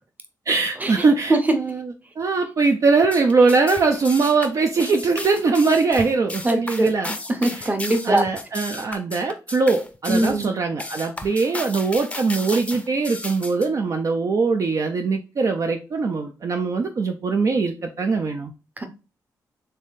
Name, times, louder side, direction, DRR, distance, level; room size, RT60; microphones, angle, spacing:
voice 1, 0.5-7.2 7.5-7.7 8.0-18.5, right 4 dB, 50° right, 4 dB, 0.4 m, -21 dB
sound 1, 3.0-13.7, left 2 dB, 15° left, 0.5 m, -34 dB
voice 2, 6.4-6.9 7.3-8.2 10.1-10.5 18.8-18.9, right 1 dB, 25° right, 7 dB, 0.8 m, -21 dB
3.3 x 3.2 x 2.6 m, 0.32 s
cardioid pair, 75°, 7 cm